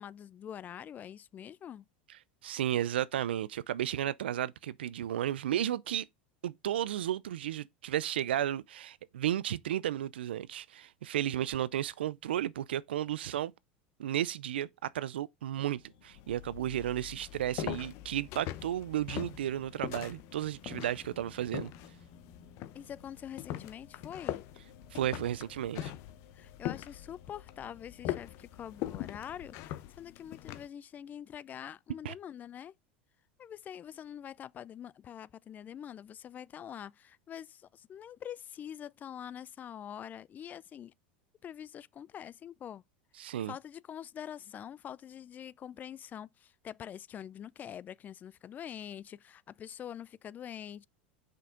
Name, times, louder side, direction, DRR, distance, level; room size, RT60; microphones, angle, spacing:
voice 1, 0.0-1.9 22.7-24.4 26.3-32.7 33.4-40.9 41.4-42.8 43.2-50.8, left 9 dB, 30° left, 0.4 m, -45 dB
voice 2, 2.4-6.1 6.4-13.5 14.0-21.7 24.9-25.9 32.0-32.1 43.2-43.5, right 11 dB, 85° right, 0.4 m, -33 dB
sound 1, 15.5-29.5, left 5 dB, 75° left, 2.0 m, -59 dB
sound 2, 16.1-30.7, left 14 dB, 55° left, 0.8 m, -42 dB
6.6 x 5.2 x 3.7 m
hypercardioid pair, 100°, 5 cm